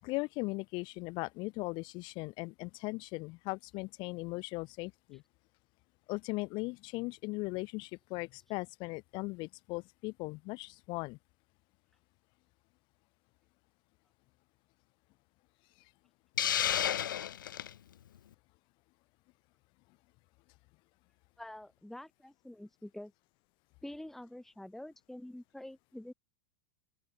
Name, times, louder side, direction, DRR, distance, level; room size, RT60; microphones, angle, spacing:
voice 1, 0.0-5.2 6.1-11.2, left 25 dB, 45° left, 5.2 m, -38 dB
Hiss, 16.4-17.7, left 10 dB, 80° left, 0.8 m, -31 dB
voice 2, 21.4-23.1 23.8-26.1, left 1 dB, 5° left, 2.4 m, -47 dB
open air
hypercardioid pair, 105°, 11 cm